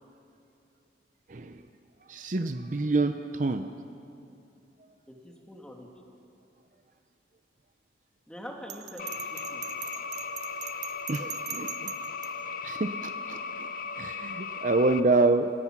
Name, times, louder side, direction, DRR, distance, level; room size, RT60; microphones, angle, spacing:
voice 1, 2.1-3.7 11.1-11.9 12.6-13.7 14.0-15.5, right 3 dB, 45° right, 8 dB, 0.6 m, -27 dB
voice 2, 5.1-5.9 8.3-9.6, equal, 5° left, 0 dB, 2.4 m, -44 dB
Bell, 8.7-12.3, right 12 dB, 65° right, 1.1 m, -40 dB
sound 1, 9.0-15.0, left 5 dB, 50° left, 0.7 m, -37 dB
27.5 x 16.5 x 6.1 m, 2.7 s
head